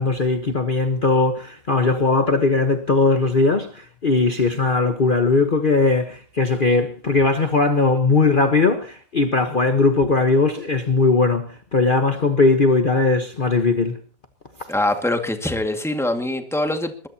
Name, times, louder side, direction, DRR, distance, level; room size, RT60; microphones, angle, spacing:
voice 1, 0.0-14.0, left 3 dB, 35° left, 1.3 m, -19 dB
voice 2, 14.7-17.1, left 1 dB, ahead, 2.0 m, -23 dB
22.0 x 20.5 x 2.9 m
omnidirectional pair, 1.6 m